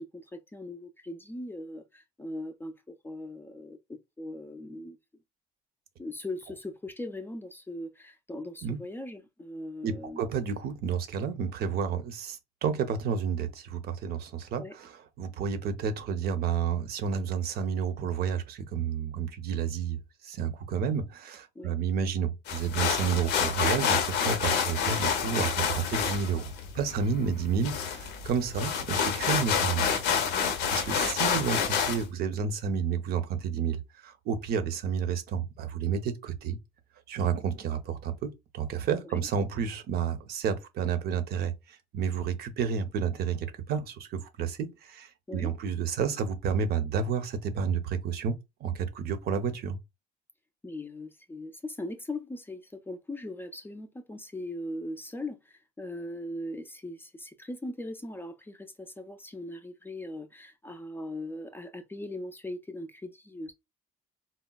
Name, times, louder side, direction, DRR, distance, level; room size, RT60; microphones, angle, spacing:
voice 1, 0.0-5.0 6.0-10.3 14.6-14.8 21.6-21.7 39.0-39.1 45.3-45.5 50.6-63.5, left 1 dB, 10° left, 0.4 m, -40 dB
voice 2, 9.8-29.9 30.7-36.6 37.1-48.3 48.6-49.8, right 7 dB, 70° right, 0.7 m, -31 dB
sound 1, 22.5-32.0, left 7 dB, 90° left, 0.7 m, -28 dB
4.0 x 2.1 x 2.2 m
cardioid pair, 110°, 17 cm